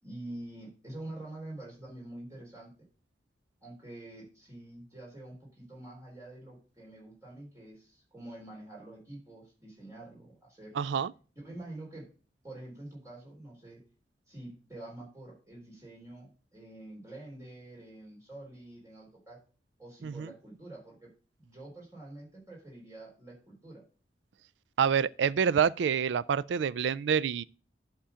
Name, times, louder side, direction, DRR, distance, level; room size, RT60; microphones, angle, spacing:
voice 1, 0.0-2.7 3.6-10.9 11.4-12.1 12.4-13.8 14.3-19.4 19.8-21.1 21.4-23.8, right 1 dB, 15° right, 3.7 m, -46 dB
voice 2, 10.8-11.1 20.0-20.3 24.8-27.4, right 7 dB, 80° right, 0.3 m, -27 dB
11.0 x 3.8 x 5.6 m
head